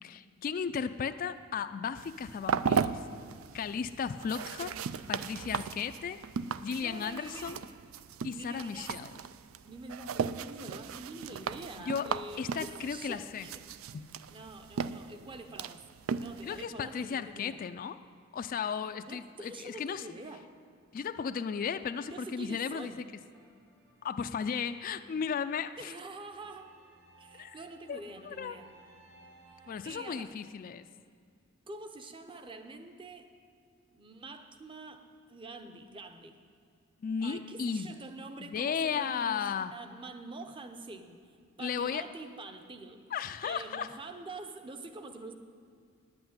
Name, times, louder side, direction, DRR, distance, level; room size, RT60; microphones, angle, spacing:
voice 1, 0.0-3.0 3.5-4.7 5.1-6.2 6.6-7.6 8.2-9.1 11.9-13.5 13.9-14.1 16.4-18.0 18.3-20.0 20.9-22.9 24.0-25.9 27.3-27.6 27.9-28.6 29.7-30.9 37.0-37.9 38.4-39.7 41.6-42.1 43.1-43.9, left 6 dB, 45° left, 11 dB, 0.3 m, -35 dB
sound 1, 2.0-16.7, right 6 dB, 80° right, 0.4 m, -37 dB
voice 2, 6.8-7.7 8.3-9.0 9.7-13.6 14.3-15.8 16.2-17.6 19.1-20.6 22.1-23.1 25.8-26.7 27.2-28.7 29.8-30.4 31.7-33.3 33.9-36.4 37.2-43.1 43.4-45.3, right 2 dB, 25° right, 7 dB, 0.7 m, -46 dB
sound 2, 23.3-24.7 26.1-30.2, right 2 dB, 55° right, 1.8 m, -59 dB
9.4 x 8.0 x 9.4 m, 2.2 s
head